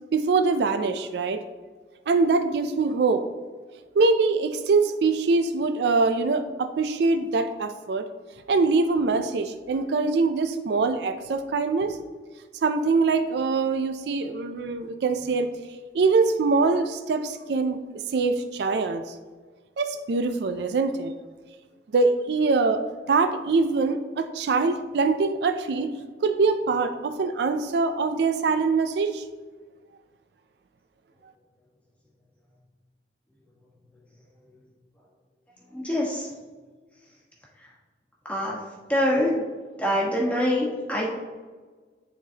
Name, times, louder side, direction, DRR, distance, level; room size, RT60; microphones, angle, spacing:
voice 1, 0.1-1.4 2.1-3.3 4.0-8.1 8.5-12.0 12.6-15.5 15.9-17.8 18.1-19.1 19.8-21.1 21.9-25.9 26.2-29.2, right 4 dB, 70° right, 9 dB, 0.4 m, -23 dB
voice 2, 35.7-36.3 38.3-38.6 38.9-39.4 39.8-41.1, left 1 dB, 10° left, -4 dB, 1.3 m, -24 dB
9.9 x 4.0 x 2.8 m, 1.4 s
head